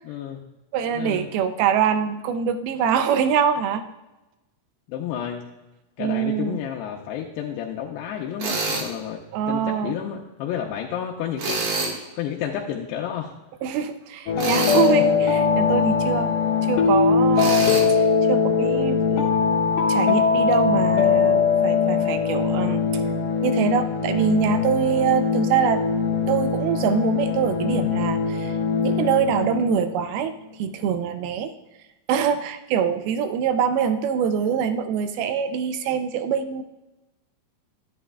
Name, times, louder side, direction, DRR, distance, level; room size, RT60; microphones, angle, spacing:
voice 1, 0.0-0.4 0.9-1.3 4.9-5.4 6.0-11.7 12.2-13.4, left 9 dB, 90° left, -1 dB, 2.7 m, -31 dB
voice 2, 0.7-3.8 6.0-6.6 9.3-9.9 13.6-16.3 16.6-19.3 19.9-23.0 23.4-25.8 26.3-28.6 28.8-30.3 30.6-31.5 32.1-36.6, right 8 dB, 80° right, 10 dB, 2.3 m, -24 dB
Tools, 8.4-8.9 11.4-12.0 14.4-14.9 17.4-17.8, right 3 dB, 60° right, 3.1 m, -26 dB
sound 1, 14.3-30.0, left 6 dB, 70° left, 2.9 m, -21 dB
11.0 x 10.5 x 2.3 m, 1.0 s
omnidirectional pair, 4.7 m